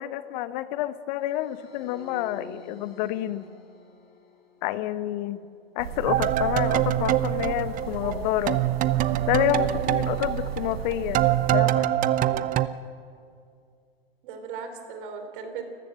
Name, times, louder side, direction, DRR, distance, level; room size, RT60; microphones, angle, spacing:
voice 1, 0.0-3.5 4.6-5.4 5.8-8.6 9.3-11.9, left 13 dB, 50° left, 14 dB, 0.9 m, -28 dB
sound 1, 1.2-12.6, left 2 dB, 75° left, 5.6 m, -52 dB
sound 2, 5.8-11.6, right 10 dB, 75° right, 1.3 m, -35 dB
sound 3, 6.1-8.2 8.5-12.7, right 13 dB, 25° right, 0.7 m, -24 dB
voice 2, 7.9-8.3 14.2-15.6, right 5 dB, 55° right, 7 dB, 3.9 m, -37 dB
28.5 x 14.5 x 7.7 m, 2.4 s
hypercardioid pair, 110°, 30 cm